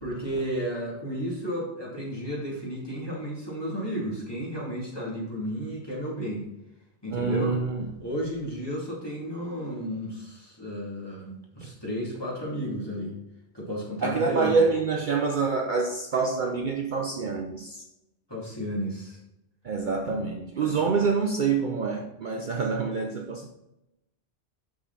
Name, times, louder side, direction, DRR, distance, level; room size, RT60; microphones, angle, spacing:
voice 1, 0.0-6.5 7.0-7.6 8.0-13.2 13.5-14.6 18.3-19.2 20.0-20.2 20.6-20.8, equal, 20° left, -5 dB, 2.6 m, -33 dB
voice 2, 7.1-7.8 11.6-11.7 14.0-17.8 19.6-23.5, right 4 dB, 50° right, 3 dB, 0.7 m, -26 dB
6.4 x 5.8 x 4.0 m, 0.89 s
omnidirectional pair, 1.1 m